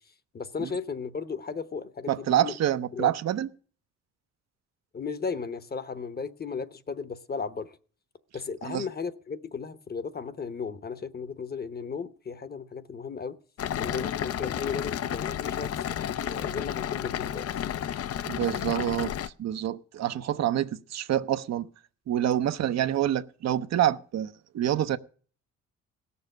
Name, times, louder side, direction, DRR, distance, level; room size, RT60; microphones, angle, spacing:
voice 1, 0.3-2.5 2.9-3.1 4.9-7.8 8.3-13.4 13.8-17.5, left 5 dB, 30° left, 1.0 m, -35 dB
voice 2, 2.1-3.5 8.6-8.8 18.3-19.1 19.4-21.7 22.1-25.0, right 11 dB, 60° right, 0.7 m, -27 dB
sound 1, 13.6-19.3, left 10 dB, 50° left, 0.6 m, -32 dB
17.0 x 7.0 x 6.6 m
cardioid pair, 90°, 30 cm